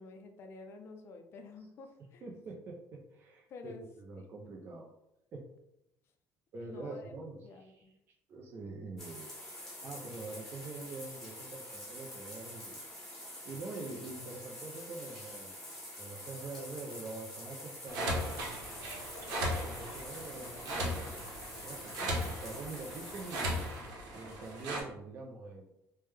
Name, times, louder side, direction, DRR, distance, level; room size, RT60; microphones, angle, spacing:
voice 1, 0.0-2.2 3.5-3.8 6.6-7.1 7.4-7.9, left 3 dB, 40° left, 5 dB, 0.4 m, -50 dB
voice 2, 2.2-4.9 5.3-5.5 6.5-7.9 8.3-9.3 9.8-12.8 13.4-15.6 16.0-18.4 19.5-21.3 21.6-23.6 24.1-25.7, right 3 dB, 35° right, -1 dB, 0.4 m, -45 dB
sound 1, 9.0-23.9, left 1 dB, 5° left, 0.8 m, -47 dB
sound 2, 17.9-24.8, equal, 80° right, 0.8 m, -37 dB
3.2 x 2.1 x 3.2 m, 0.86 s
cardioid pair, 175°, 7 cm